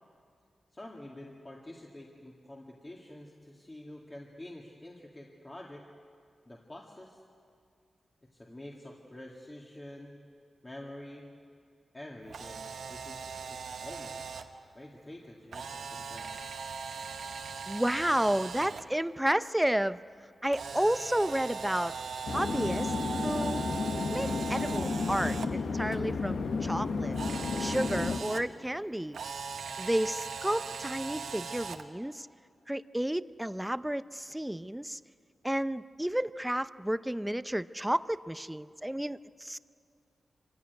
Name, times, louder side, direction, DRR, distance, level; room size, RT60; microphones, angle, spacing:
voice 1, 0.7-5.8 6.5-7.2 8.3-10.2 10.6-11.3 11.9-14.2 14.7-16.5, left 1 dB, 25° left, -2 dB, 2.1 m, -47 dB
Camera, 12.2-14.4 15.5-18.8 20.5-25.5 27.1-28.4 29.1-31.8, right 5 dB, 85° right, 1.1 m, -39 dB
voice 2, 17.7-20.0 20.4-21.9 22.3-22.9 23.2-23.7 24.1-27.2 27.6-29.2 29.8-32.3 32.7-35.0 35.4-39.6, right 1 dB, 10° right, 14 dB, 0.6 m, -31 dB
sound 1, 22.3-28.2, left 4 dB, 75° left, 1.2 m, -32 dB
25.0 x 16.0 x 9.5 m, 2.3 s
cardioid pair, 70°, 0 cm